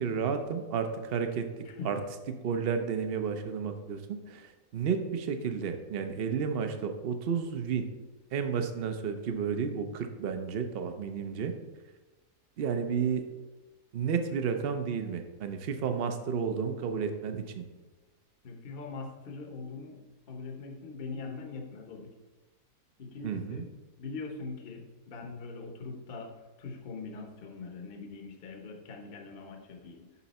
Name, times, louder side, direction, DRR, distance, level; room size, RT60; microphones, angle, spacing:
voice 1, 0.0-1.5 1.8-2.0 2.3-7.9 8.3-11.5 12.6-13.2 13.9-17.6 23.2-23.6, right 6 dB, 55° right, 7 dB, 0.6 m, -32 dB
voice 2, 1.6-2.0 18.4-20.0 20.3-22.1 23.0-23.7 24.0-26.3 26.6-30.2, left 4 dB, 40° left, 3 dB, 0.9 m, -42 dB
7.0 x 5.8 x 4.1 m, 1.2 s
omnidirectional pair, 1.7 m